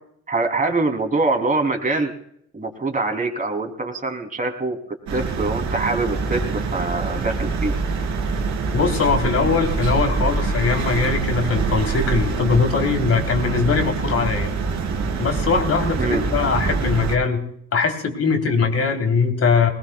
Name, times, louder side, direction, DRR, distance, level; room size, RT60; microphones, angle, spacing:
voice 1, 0.3-2.1 2.5-4.8 5.1-7.7 16.0-16.2, right 3 dB, 25° right, 4 dB, 3.2 m, -24 dB
sound 1, 5.1-17.2, right 4 dB, 65° right, 3.0 m, -25 dB
voice 2, 8.7-14.5 15.2-17.4 17.7-19.7, left 5 dB, 55° left, 4 dB, 3.5 m, -21 dB
21.0 x 19.5 x 2.4 m, 0.68 s
cardioid pair, 90°, 30 cm